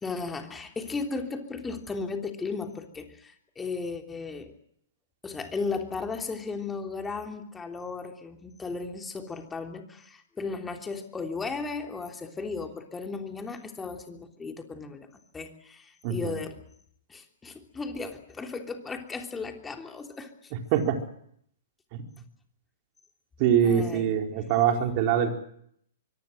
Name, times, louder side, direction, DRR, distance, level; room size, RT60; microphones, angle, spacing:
voice 1, 0.0-4.5 5.2-15.1 15.3-16.5 17.1-20.5 23.6-24.1, left 4 dB, 15° left, 4 dB, 3.3 m, -35 dB
voice 2, 16.0-16.3 20.7-21.0 23.4-25.3, right 8 dB, 45° right, 4 dB, 4.5 m, -23 dB
24.0 x 23.5 x 7.7 m, 0.70 s
hypercardioid pair, 120°, 0 cm